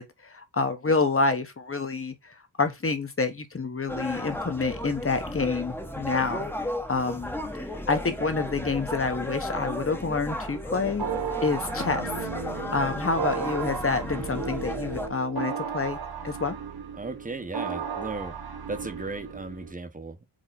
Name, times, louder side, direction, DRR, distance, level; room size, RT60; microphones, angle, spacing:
voice 1, 0.0-6.5 6.9-7.3 7.9-11.0 11.4-16.0 16.2-16.6, left 4 dB, 30° left, 1.2 m, -28 dB
sound 1, 3.9-15.1, left 1 dB, 5° left, 1.1 m, -34 dB
sound 2, 11.0-19.7, right 6 dB, 50° right, 1.2 m, -34 dB
voice 2, 17.0-18.3 18.7-20.3, right 3 dB, 15° right, 1.1 m, -36 dB
5.1 x 4.8 x 4.0 m
wide cardioid pair, 140°, 47 cm